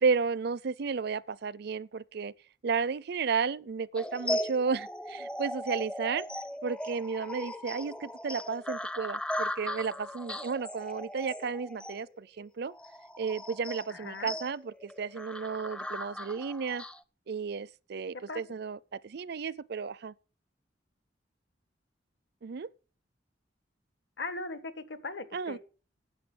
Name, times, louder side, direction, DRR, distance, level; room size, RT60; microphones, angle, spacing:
voice 1, 0.0-2.3 2.6-6.3 6.6-12.7 13.2-16.8 17.3-20.1 22.4-22.7 25.3-25.6, right 5 dB, 60° right, 0.5 m, -33 dB
sound 1, 3.9-17.0, left 1 dB, 5° left, 0.5 m, -38 dB
voice 2, 13.9-14.3 18.1-18.5 24.2-25.6, left 3 dB, 70° left, 1.4 m, -39 dB
9.8 x 8.0 x 8.7 m
head